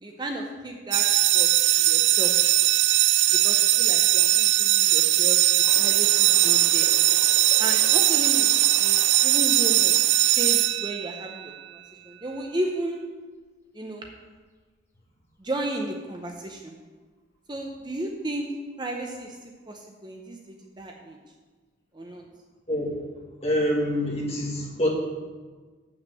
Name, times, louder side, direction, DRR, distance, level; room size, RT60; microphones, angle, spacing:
voice 1, 0.0-2.3 3.3-5.4 5.8-6.9 7.6-8.5 8.8-10.1 10.4-13.0 13.7-14.1 15.4-16.7 17.5-18.5 18.8-21.2 21.9-22.2, right 1 dB, 25° right, 2 dB, 0.6 m, -34 dB
sound 1, 0.9-11.3, right 14 dB, 70° right, 0.4 m, -20 dB
Bird, 5.6-11.0 11.9-12.0 12.4-12.5 13.4-13.5 14.4-14.5 15.4-15.5, left 1 dB, 15° left, 1.9 m, -43 dB
voice 2, 23.4-24.9, equal, 30° left, -2 dB, 1.8 m, -25 dB
7.3 x 6.0 x 7.7 m, 1.4 s
head